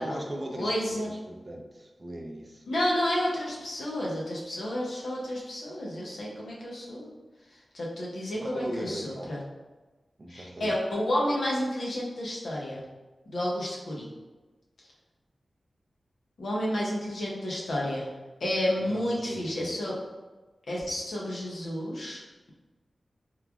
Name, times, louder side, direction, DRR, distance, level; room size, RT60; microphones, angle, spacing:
voice 1, 0.0-2.7 8.3-9.3 10.2-10.8 18.9-19.7, right 1 dB, 35° right, 1 dB, 0.4 m, -39 dB
voice 2, 0.6-1.1 2.7-7.1 7.7-9.4 10.3-12.8 13.3-14.1 16.4-18.1 18.4-20.0 20.7-22.2, left 1 dB, 80° left, -4 dB, 0.7 m, -30 dB
3.0 x 2.4 x 2.3 m, 1.2 s
cardioid pair, 60°, 0 cm